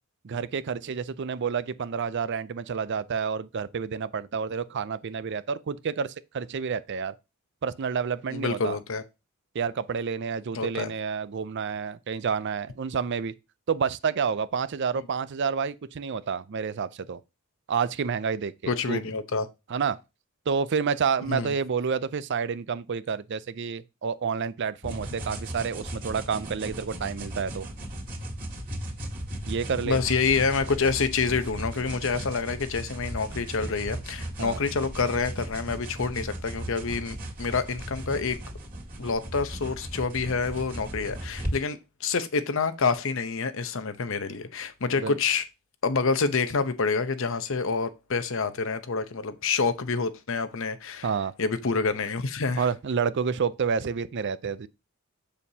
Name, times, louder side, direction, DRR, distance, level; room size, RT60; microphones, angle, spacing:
voice 1, 0.2-7.1 7.6-8.8 9.5-13.3 13.7-17.2 17.7-19.0 19.7-20.0 20.5-27.7 29.5-30.0 34.4-34.6 45.0-45.2 51.0-51.3 52.6-54.7, right 6 dB, 55° right, 0.4 m, -29 dB
voice 2, 8.3-9.0 10.5-10.9 18.7-19.5 21.3-21.5 29.8-38.4 39.0-45.4 45.8-51.1 51.4-52.6, left 4 dB, 65° left, 0.7 m, -27 dB
sound 1, 24.8-41.5, right 1 dB, 40° right, 2.1 m, -36 dB
7.2 x 6.7 x 2.8 m
head